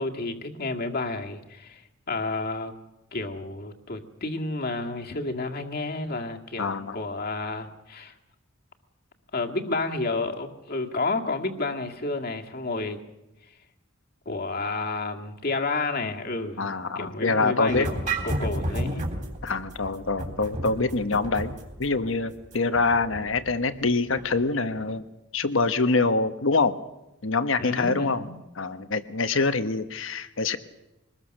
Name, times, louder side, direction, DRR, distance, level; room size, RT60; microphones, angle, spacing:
voice 1, 0.0-1.8 2.1-2.7 3.1-8.1 9.3-13.0 14.3-16.7 17.0-19.1 27.6-28.4, left 3 dB, 50° left, 3 dB, 2.0 m, -30 dB
voice 2, 6.6-7.0 16.6-17.9 19.4-25.1 25.3-26.7 27.2-28.3 28.6-30.6, left 3 dB, 70° left, 10 dB, 1.2 m, -25 dB
sound 1, 17.7-24.4, right 1 dB, 40° right, 3.6 m, -33 dB
23.5 x 20.0 x 6.6 m, 0.94 s
head